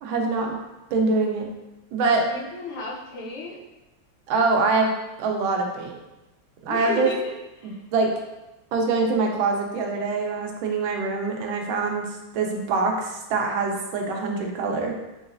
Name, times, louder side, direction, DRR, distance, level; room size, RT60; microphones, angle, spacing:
voice 1, 0.0-0.6 0.9-1.5 1.9-2.3 4.3-4.9 5.2-5.9 6.6-7.1 7.6-8.1 8.7-14.9, right 3 dB, 75° right, 1 dB, 1.4 m, -24 dB
voice 2, 2.2-3.6 6.7-7.8, left 3 dB, 90° left, -4 dB, 1.7 m, -34 dB
3.9 x 3.8 x 2.5 m, 1.0 s
omnidirectional pair, 2.3 m